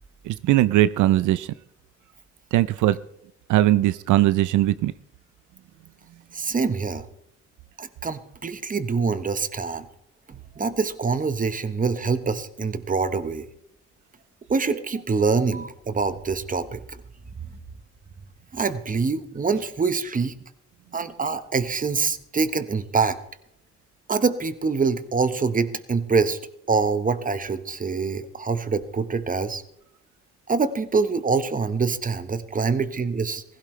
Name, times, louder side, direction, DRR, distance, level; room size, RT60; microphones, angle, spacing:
voice 1, 0.3-1.5 2.5-3.0 3.5-4.9, right 14 dB, 80° right, 16 dB, 0.5 m, -19 dB
voice 2, 6.3-7.0 7.8-9.9 10.3-13.5 14.5-16.8 18.5-20.3 20.9-23.2 24.1-26.4 26.7-29.6 30.5-33.4, right 4 dB, 25° right, 12 dB, 1.2 m, -25 dB
16.0 x 16.0 x 3.3 m, 0.75 s
cardioid pair, 90°, 30 cm